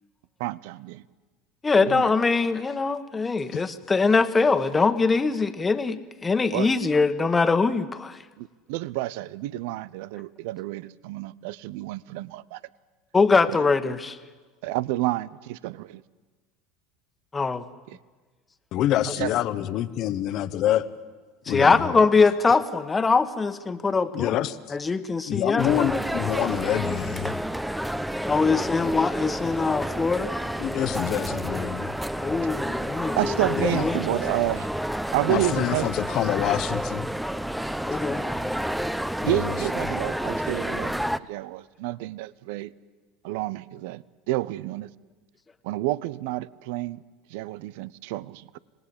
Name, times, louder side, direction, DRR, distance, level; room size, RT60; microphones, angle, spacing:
voice 1, 0.4-1.0 1.8-2.1 6.5-6.7 8.4-12.6 13.5-13.7 14.6-16.0 17.9-18.0 19.0-19.4 33.1-34.7 35.1-35.9 39.3-42.7 43.2-44.9 45.6-47.0 47.3-48.6, right 16 dB, 65° right, 0.7 m, -30 dB
voice 2, 1.6-8.2 13.1-14.1 17.3-17.6 21.5-24.4 24.7-26.0 28.2-30.3 32.2-33.9 37.8-38.2, left 4 dB, 20° left, 1.5 m, -22 dB
voice 3, 18.7-20.9 21.5-22.1 24.1-24.8 25.3-27.4 30.6-31.9 33.6-33.8 35.3-37.1 39.2-39.4, left 12 dB, 50° left, 1.1 m, -26 dB
sound 1, 25.6-41.2, equal, 5° right, 0.8 m, -30 dB
26.5 x 19.0 x 8.7 m
hypercardioid pair, 80°, 0 cm